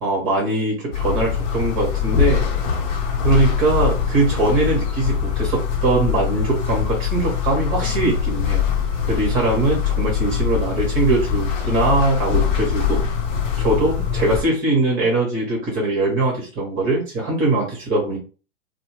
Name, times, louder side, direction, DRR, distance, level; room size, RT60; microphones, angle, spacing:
voice 1, 0.0-2.4 3.2-8.6 9.1-13.0 13.6-18.2, right 2 dB, 35° right, -2 dB, 1.2 m, -21 dB
sound 1, 0.9-14.4, left 8 dB, 40° left, 0.7 m, -23 dB
2.6 x 2.1 x 3.0 m, 0.35 s
figure-of-eight pair, 100°, 37 cm